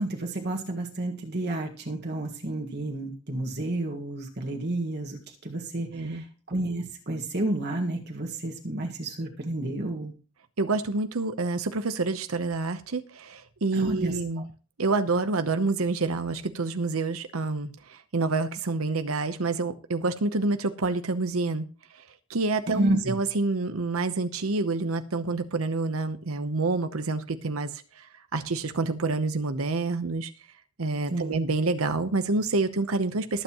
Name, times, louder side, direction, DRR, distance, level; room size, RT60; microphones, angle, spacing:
voice 1, 0.0-10.1 13.7-14.4 22.7-23.1 31.1-31.4, right 1 dB, 50° right, 1 dB, 1.7 m, -31 dB
voice 2, 5.9-6.2 10.6-14.5 14.8-21.7 22.3-28.1 28.3-30.3 30.8-33.4, right 3 dB, 85° right, 9 dB, 0.9 m, -28 dB
21.0 x 7.9 x 3.0 m, 0.37 s
head